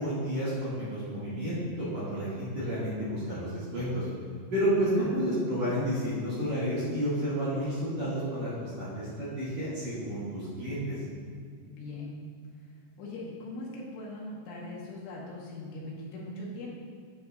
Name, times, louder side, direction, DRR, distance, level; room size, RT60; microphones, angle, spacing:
voice 1, 0.0-4.0 4.5-11.0, equal, 45° right, -10 dB, 2.8 m, -31 dB
voice 2, 11.7-12.2 13.0-16.7, left 2 dB, 75° left, -4 dB, 3.8 m, -40 dB
10.5 x 9.7 x 2.6 m, 2.1 s
omnidirectional pair, 5.7 m